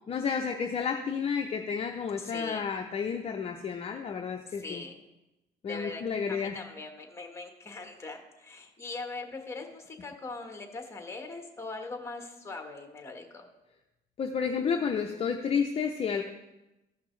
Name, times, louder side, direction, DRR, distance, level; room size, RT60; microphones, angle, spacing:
voice 1, 0.1-4.8 5.6-6.6 14.2-16.2, left 6 dB, 35° left, 4 dB, 0.6 m, -31 dB
voice 2, 2.2-2.7 4.5-4.9 5.7-6.0 6.3-13.5, left 3 dB, 15° left, 4 dB, 1.4 m, -41 dB
14.5 x 5.8 x 3.2 m, 0.98 s
cardioid pair, 110°, 17 cm